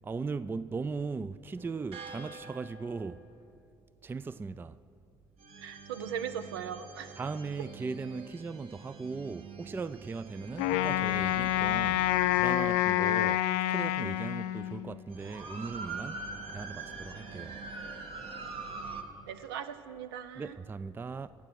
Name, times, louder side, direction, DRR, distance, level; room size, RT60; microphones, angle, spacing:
voice 1, 0.0-3.2 4.0-4.8 7.2-12.0 12.3-16.2 16.5-17.6 20.4-21.3, right 4 dB, 15° right, 0.3 m, -38 dB
sound 1, 1.6-3.4 5.4-12.8 13.9-14.0 15.1-19.0, right 4 dB, 50° right, 1.4 m, -44 dB
voice 2, 5.6-7.2 19.3-20.6, right 8 dB, 85° right, 0.6 m, -39 dB
Wind instrument woodwind instrument, 10.6-15.0, left 14 dB, 75° left, 0.4 m, -28 dB
15.5 x 8.9 x 6.2 m
hypercardioid pair, 60°, 12 cm